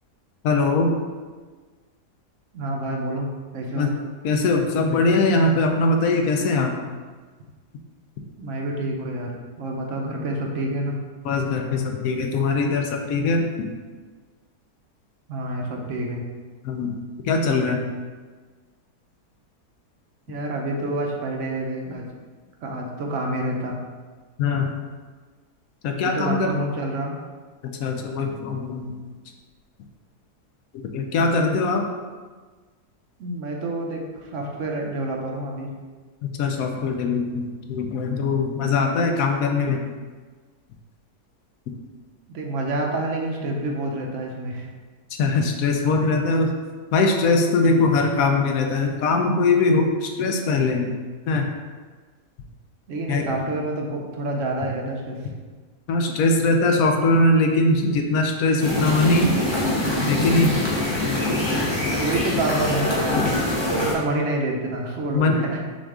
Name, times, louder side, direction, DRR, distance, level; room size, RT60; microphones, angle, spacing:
voice 1, 0.4-1.0 3.7-3.9 4.2-6.7 11.2-13.7 16.6-17.0 17.2-17.8 24.4-24.7 25.8-26.5 27.6-28.9 30.9-31.8 36.4-39.9 45.2-46.5 46.9-51.0 51.3-51.5 53.1-53.3 55.9-59.3 60.1-60.5 63.1-63.3 65.1-65.4, left 3 dB, 70° left, 3 dB, 0.9 m, -21 dB
voice 2, 2.5-3.9 8.4-11.0 15.3-16.2 20.3-22.0 22.6-23.8 25.9-27.2 31.6-31.7 33.2-35.7 42.3-44.7 47.6-47.9 52.9-55.2 62.0-65.6, right 1 dB, 60° right, 0 dB, 0.9 m, -28 dB
sound 1, 58.6-63.9, left 1 dB, 25° left, 0.7 m, -24 dB
6.1 x 2.4 x 3.6 m, 1.4 s
omnidirectional pair, 1.7 m